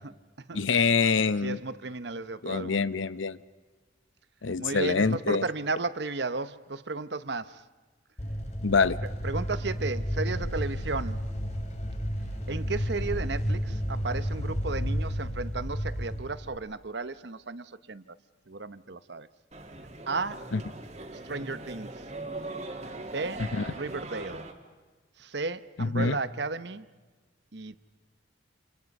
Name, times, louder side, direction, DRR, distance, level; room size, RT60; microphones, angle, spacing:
voice 1, 0.0-0.7 1.4-2.9 4.6-7.6 9.2-11.2 12.5-18.2 18.5-19.3 20.1-20.5 21.2-22.0 23.0-24.5 25.2-26.9 27.5-27.8, right 3 dB, 60° right, 0.9 m, -34 dB
voice 2, 0.5-1.6 2.4-3.4 4.4-5.4 8.6-9.0 20.5-20.6 23.4-23.6 25.8-26.2, left 4 dB, 80° left, 0.8 m, -25 dB
sound 1, 8.2-16.5, equal, 35° left, 2.7 m, -32 dB
sound 2, 19.5-24.5, right 2 dB, 35° right, 2.2 m, -40 dB
29.0 x 28.5 x 5.4 m
head